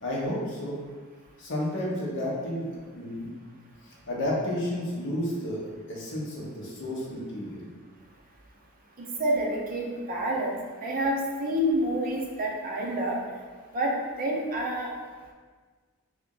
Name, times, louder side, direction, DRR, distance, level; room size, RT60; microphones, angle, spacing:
voice 1, 0.0-0.8 1.4-3.3 3.8-7.7, left 1 dB, 55° left, -4 dB, 0.8 m, -32 dB
voice 2, 9.0-10.6 10.8-13.2 13.7-13.9 14.2-14.9, right 1 dB, 40° right, -2 dB, 0.6 m, -28 dB
2.9 x 2.5 x 3.7 m, 1.5 s
head